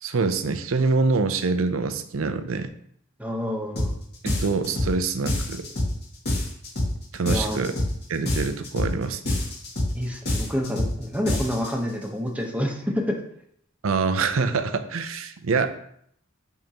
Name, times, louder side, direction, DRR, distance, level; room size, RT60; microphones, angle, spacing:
voice 1, 0.0-2.7 4.2-5.7 7.1-7.8 8.1-9.3 13.8-15.8, right 4 dB, 80° right, 10 dB, 0.6 m, -25 dB
voice 2, 3.2-3.9 7.3-7.6 9.9-13.2, equal, 5° right, 1 dB, 1.0 m, -28 dB
sound 1, 3.8-4.0 4.3-5.0 5.3-6.0 6.3-7.0 7.3-8.0 8.3-9.0 9.3-10.0 10.3-11.0 11.3-11.7, left 1 dB, 55° left, 2.2 m, -26 dB
10.5 x 3.6 x 2.9 m, 0.69 s
head